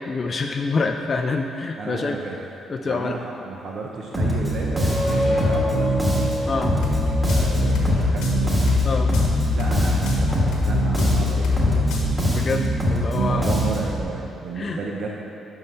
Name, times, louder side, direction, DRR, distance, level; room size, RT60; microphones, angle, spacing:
voice 1, 0.0-2.2 2.7-3.2 6.5-6.7 8.8-9.1 12.2-13.5 14.6-14.8, left 4 dB, 40° left, 4 dB, 0.4 m, -26 dB
voice 2, 1.8-2.4 2.8-5.9 7.2-8.5 9.5-11.9 13.1-15.1, right 3 dB, 60° right, -2 dB, 0.6 m, -32 dB
Bass guitar, 4.1-14.0, right 1 dB, 15° right, 1.7 m, -23 dB
sound 1, 4.6-8.2, left 1 dB, 15° left, 1.3 m, -28 dB
sound 2, 6.7-12.1, left 4 dB, 85° left, 1.2 m, -24 dB
5.5 x 5.3 x 5.9 m, 2.8 s
cardioid pair, 90°, 0 cm